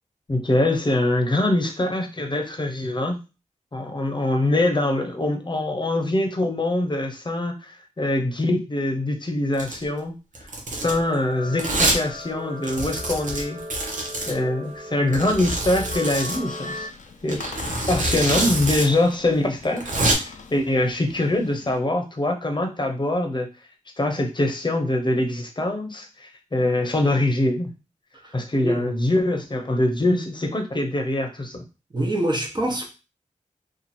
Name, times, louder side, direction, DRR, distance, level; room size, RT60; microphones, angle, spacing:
voice 1, 0.3-3.2 3.7-10.1 10.7-13.6 14.3-16.9 17.2-17.4 17.9-23.5 24.0-27.7 28.3-31.6, left 1 dB, 35° left, 0.8 m, -23 dB
Domestic sounds home sounds, 9.5-9.8 10.3-11.0 11.6-12.0 12.3-12.4 12.6-14.3 15.1-16.4 17.3-18.9 19.1-19.2 19.6-20.1, right 2 dB, 85° right, 0.9 m, -25 dB
sound 1, 10.8-16.9, left 1 dB, 60° right, 1.1 m, -37 dB
Squeak, 16.0-21.8, left 5 dB, 85° left, 0.5 m, -42 dB
voice 2, 31.9-32.9, right 1 dB, 35° right, 1.1 m, -25 dB
2.9 x 2.5 x 4.2 m
cardioid pair, 55°, 13 cm